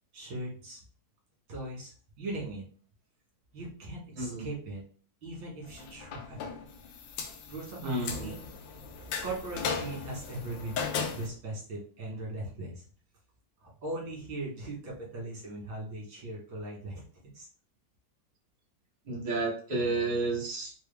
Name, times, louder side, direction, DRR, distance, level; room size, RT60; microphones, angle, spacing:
voice 1, 0.1-0.8 1.5-2.7 3.5-4.8 5.2-6.4 7.5-8.4 9.2-10.8 11.1-12.8 13.6-17.0 17.3-17.5, right 2 dB, 85° right, -3 dB, 2.3 m, -39 dB
sound 1, 5.7-11.3, left 5 dB, 80° left, 1.3 m, -37 dB
voice 2, 7.8-8.3 19.1-20.7, right 3 dB, 25° right, -3 dB, 1.0 m, -31 dB
4.5 x 2.2 x 3.4 m, 0.43 s
omnidirectional pair, 2.0 m